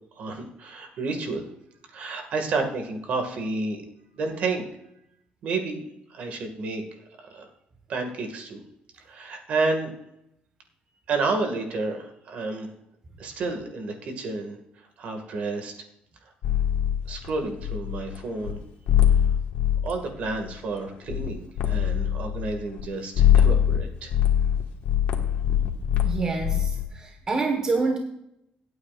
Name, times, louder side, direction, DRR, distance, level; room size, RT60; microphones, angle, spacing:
voice 1, 0.2-1.4 1.9-3.8 4.2-4.7 5.4-6.8 7.2-7.5 7.9-8.6 9.1-9.9 11.1-12.7 13.2-14.6 15.0-15.7 17.1-18.6 19.8-24.1, right 3 dB, 50° right, 4 dB, 2.0 m, -30 dB
sound 1, 16.4-18.2 18.4-18.5 18.9-19.9 20.2-20.8 21.1-21.3 21.6-22.8 23.2-23.8 24.1-26.8, left 9 dB, 85° left, 1.6 m, -22 dB
voice 2, 26.0-28.0, right 3 dB, 25° right, 3 dB, 1.4 m, -27 dB
26.0 x 8.8 x 2.5 m, 0.80 s
cardioid pair, 165°, 3 cm